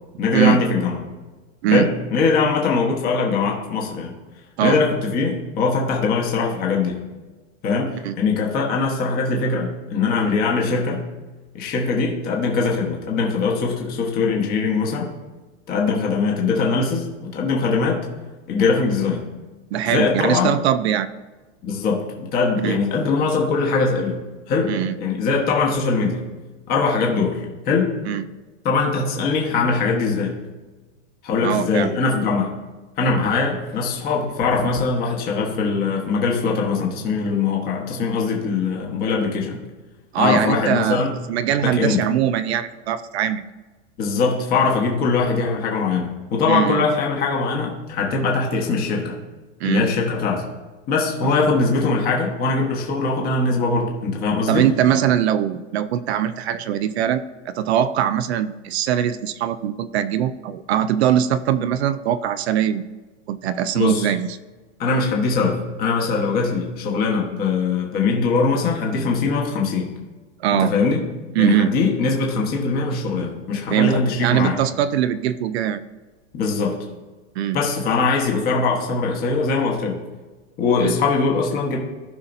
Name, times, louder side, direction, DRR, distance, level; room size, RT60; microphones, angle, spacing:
voice 1, 0.2-1.0 1.7-4.1 4.6-7.0 7.6-11.0 11.5-15.1 15.7-18.1 18.5-19.2 19.9-20.5 21.6-24.2 24.5-26.2 26.7-27.9 28.6-30.3 31.2-32.5 33.0-39.6 40.2-41.1 41.6-42.0 44.0-49.2 49.6-50.4 50.9-54.7 63.7-64.1 64.8-69.9 70.6-71.0 71.4-74.6 76.3-76.8 77.5-80.0 80.6-81.8, left 4 dB, 25° left, -1 dB, 1.3 m, -21 dB
voice 2, 19.7-21.1 22.6-22.8 24.7-25.0 28.1-28.2 31.4-31.9 40.1-43.5 46.5-46.8 49.6-49.9 54.5-62.9 63.3-64.4 70.4-70.7 71.4-71.7 73.7-75.8 77.4-77.6 80.8-80.9, right 10 dB, 60° right, 13 dB, 0.5 m, -21 dB
15.5 x 5.7 x 2.7 m, 1.2 s
supercardioid pair, 165°, 38 cm